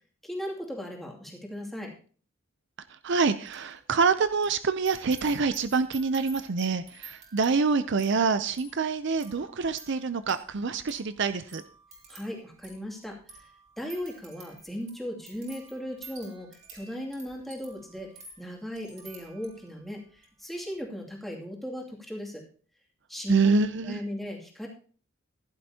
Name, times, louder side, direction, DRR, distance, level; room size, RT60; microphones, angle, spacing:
voice 1, 0.2-1.9 12.1-13.5 13.8-18.1 18.4-22.4 23.1-24.7, equal, ahead, -2 dB, 2.5 m, -37 dB
voice 2, 3.0-11.6 23.3-24.0, right 4 dB, 60° right, 12 dB, 0.6 m, -26 dB
sound 1, 3.2-3.7 4.0-19.7 20.2-20.5, right 4 dB, 35° right, 3.7 m, -51 dB
15.0 x 11.0 x 2.8 m, 0.40 s
head